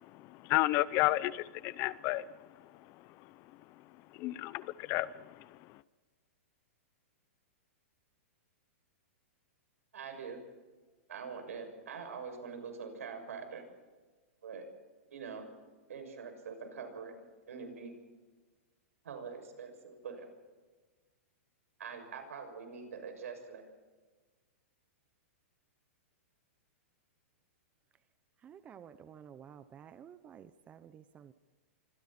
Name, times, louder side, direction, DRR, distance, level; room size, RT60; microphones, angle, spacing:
voice 1, 0.0-3.4 3.8-3.9 4.1-5.8, left 17 dB, 35° left, 18 dB, 0.7 m, -33 dB
voice 2, 9.9-10.4 11.1-13.7 14.4-14.6 15.1-15.5 15.9-17.1 17.5-18.0 19.0-20.3 21.8-23.6, right 5 dB, 85° right, 5 dB, 6.8 m, -44 dB
voice 3, 28.4-31.3, right 8 dB, 20° right, 12 dB, 0.8 m, -52 dB
26.5 x 25.5 x 4.4 m, 1.3 s
hypercardioid pair, 150°, 8 cm